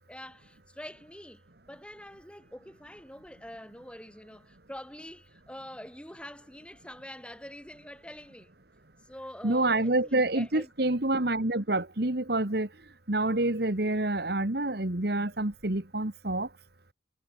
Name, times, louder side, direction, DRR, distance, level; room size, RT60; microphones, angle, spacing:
voice 1, 0.1-1.4 1.7-8.5 9.0-10.7, left 1 dB, 5° left, 6.5 m, -45 dB
voice 2, 9.4-12.7 13.1-16.5, right 2 dB, 55° right, 1.8 m, -27 dB
head